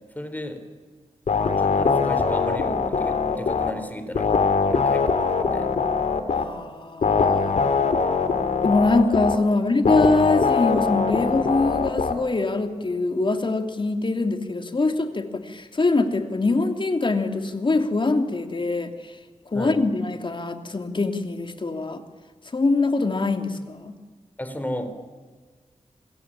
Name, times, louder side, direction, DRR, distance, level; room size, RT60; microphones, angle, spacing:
voice 1, 0.2-0.6 1.6-4.4 4.7-5.7 19.5-19.8 24.4-25.1, left 1 dB, 15° left, 10 dB, 3.9 m, -34 dB
sound 1, 1.3-3.7 4.1-6.4 7.0-9.4 9.9-12.1, left 5 dB, 80° left, 2.6 m, -22 dB
voice 2, 6.3-7.6 8.6-19.1 19.5-22.0 22.5-23.9, left 3 dB, 45° left, 6 dB, 2.9 m, -23 dB
28.0 x 21.5 x 8.9 m, 1.4 s
wide cardioid pair, 90°, 12 cm